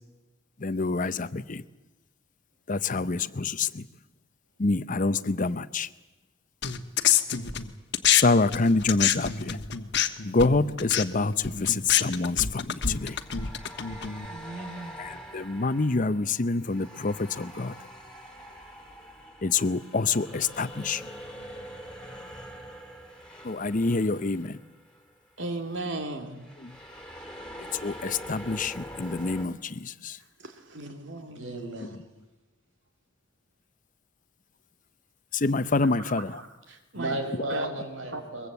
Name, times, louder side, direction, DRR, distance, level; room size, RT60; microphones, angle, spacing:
voice 1, 0.6-1.6 2.7-3.8 4.6-5.9 8.1-9.6 10.2-13.2 15.0-17.7 19.4-21.0 23.4-24.6 26.6-26.7 27.8-30.2 35.3-36.4, left 3 dB, 40° left, 14 dB, 0.7 m, -26 dB
sound 1, 6.6-8.2 8.5-14.3, left 9 dB, 60° left, 1.3 m, -27 dB
sound 2, 10.1-10.3 12.8-25.1 25.4-25.6 26.3-29.5, equal, 5° left, 3.2 m, -44 dB
voice 2, 14.3-15.0 25.4-26.4 30.4-31.5 36.4-37.2 37.5-37.7 38.1-38.2, right 2 dB, 65° right, 6 dB, 2.6 m, -36 dB
voice 3, 31.3-31.9 36.9-38.5, right 1 dB, 85° right, 6 dB, 4.9 m, -34 dB
22.5 x 22.0 x 8.2 m, 1.1 s
head